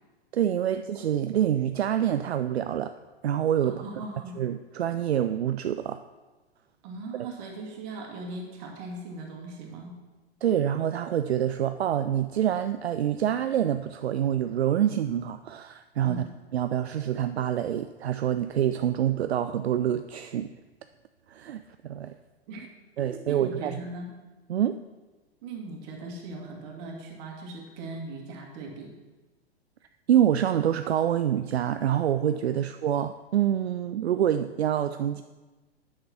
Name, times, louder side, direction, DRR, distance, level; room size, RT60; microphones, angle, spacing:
voice 1, 0.3-2.9 3.2-3.8 4.4-6.0 10.4-16.2 16.5-20.5 21.3-22.1 23.0-23.8 24.5-24.8 30.1-35.2, right 10 dB, 75° right, 10 dB, 0.5 m, -26 dB
voice 2, 3.6-4.5 6.8-10.0 16.0-16.4 22.5-22.6 23.0-24.2 25.4-28.9, right 2 dB, 45° right, 0 dB, 2.4 m, -39 dB
7.9 x 6.5 x 5.9 m, 1.2 s
figure-of-eight pair, 105°, 32 cm